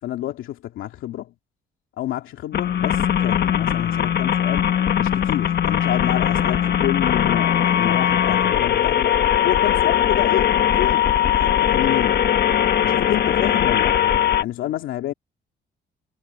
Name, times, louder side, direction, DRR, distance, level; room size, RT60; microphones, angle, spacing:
voice 1, 0.0-1.3 2.0-4.7 5.0-9.2 9.4-11.0 11.4-12.2 12.8-14.0 14.4-15.1, left 13 dB, 85° left, 2.6 m, -29 dB
sound 1, 2.5-14.4, left 10 dB, 55° left, 1.5 m, -20 dB
cardioid pair, 90°, 20 cm